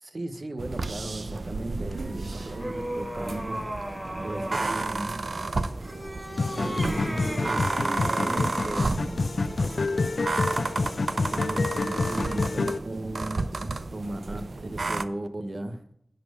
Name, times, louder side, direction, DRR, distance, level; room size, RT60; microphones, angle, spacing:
voice 1, 0.0-3.9 4.2-5.3 6.6-9.4 11.3-15.8, right 1 dB, 60° right, 1.1 m, -36 dB
sound 1, 0.6-15.0, right 3 dB, 75° right, 0.5 m, -32 dB
sound 2, 1.8-4.8 5.7-8.9, right 1 dB, 15° right, 2.0 m, -36 dB
sound 3, 6.4-12.8, left 3 dB, 75° left, 0.6 m, -28 dB
10.5 x 4.3 x 7.7 m
wide cardioid pair, 50°, 0 cm